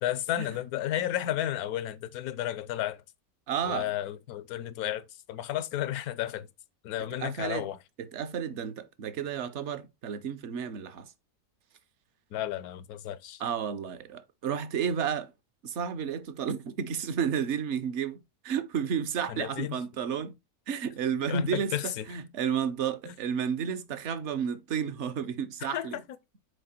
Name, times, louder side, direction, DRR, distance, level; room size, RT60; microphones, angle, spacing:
voice 1, 0.0-3.0 3.6-6.5 6.8-7.8 12.3-13.4 19.3-19.8 21.3-22.0 23.1-23.2 25.7-26.0, left 12 dB, 80° left, 1.1 m, -32 dB
voice 2, 3.5-3.9 7.2-7.7 8.0-11.1 13.4-15.3 15.6-20.3 20.7-26.0, right 7 dB, 60° right, 0.9 m, -32 dB
6.6 x 4.2 x 4.2 m
omnidirectional pair, 1.6 m